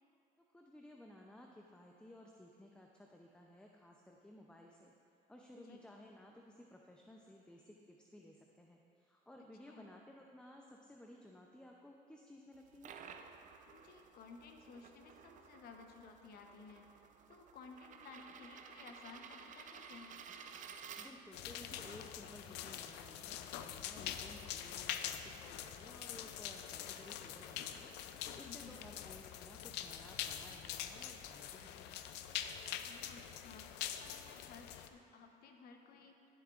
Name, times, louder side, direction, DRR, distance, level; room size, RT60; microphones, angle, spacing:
voice 1, 0.5-4.9 5.3-12.9 21.0-32.0, left 1 dB, 5° left, 0 dB, 0.5 m, -57 dB
mp het i pen, 12.5-21.5, right 6 dB, 50° right, 0.5 m, -54 dB
voice 2, 13.7-16.9 17.3-20.1 28.4-28.8 32.9-33.7 34.0-36.1, left 5 dB, 65° left, 4 dB, 0.9 m, -56 dB
sound 1, 21.3-34.9, left 10 dB, 85° left, 0.4 m, -45 dB
12.5 x 7.3 x 2.5 m, 2.5 s
cardioid pair, 110°, 17 cm